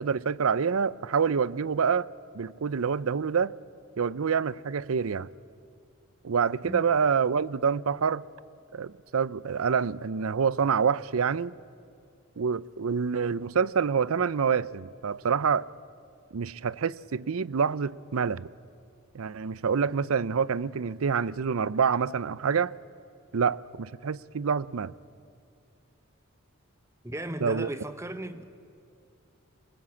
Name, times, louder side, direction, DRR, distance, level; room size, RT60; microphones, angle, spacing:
voice 1, 0.0-2.1 2.3-3.5 4.0-5.3 6.2-8.2 8.7-11.5 12.4-15.7 16.3-18.5 19.1-22.7 23.3-24.9 27.4-27.7, right 6 dB, 75° right, 0.5 m, -27 dB
voice 2, 27.0-28.4, right 1 dB, 15° right, 1.1 m, -36 dB
24.0 x 20.5 x 8.4 m
head